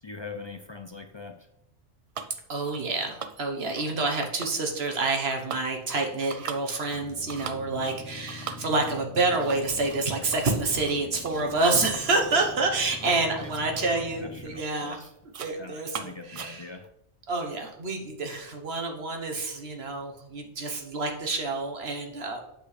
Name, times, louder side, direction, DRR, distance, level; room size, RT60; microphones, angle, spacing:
voice 1, 0.0-1.5 13.0-13.1 13.4-13.8 14.2-15.1 15.5-16.9, left 4 dB, 45° left, 6 dB, 0.4 m, -42 dB
sound 1, 2.1-2.4 2.6-2.9 3.2-3.9 4.2-5.0 5.3-14.1 14.4-14.7 15.0-15.6 15.9-16.9, right 6 dB, 55° right, 0.4 m, -42 dB
voice 2, 2.5-15.0 15.4-16.7 17.3-22.4, right 3 dB, 70° right, 3 dB, 1.4 m, -28 dB
sound 2, 6.9-14.6, left 2 dB, 15° left, 0.8 m, -44 dB
8.3 x 6.1 x 3.3 m, 0.81 s
omnidirectional pair, 1.1 m